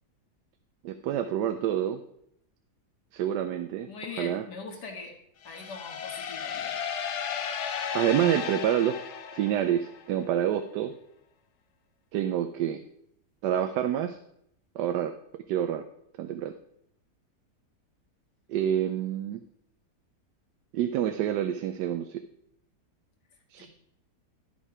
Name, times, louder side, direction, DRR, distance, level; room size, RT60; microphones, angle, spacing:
voice 1, 0.8-2.0 3.1-3.9 4.2-4.4 7.9-9.0 9.3-10.9 12.1-12.8 13.4-14.2 14.8-15.1 15.5-15.8 16.2-16.5 18.5-19.4 20.7-22.2 23.5-23.7, right 10 dB, 85° right, 8 dB, 1.2 m, -27 dB
voice 2, 3.9-5.2 5.4-6.8 23.6-23.7, left 4 dB, 75° left, 2 dB, 2.2 m, -41 dB
sound 1, 5.4-10.1, left 7 dB, 55° left, 0.8 m, -34 dB
12.0 x 5.4 x 4.8 m, 0.74 s
omnidirectional pair, 1.8 m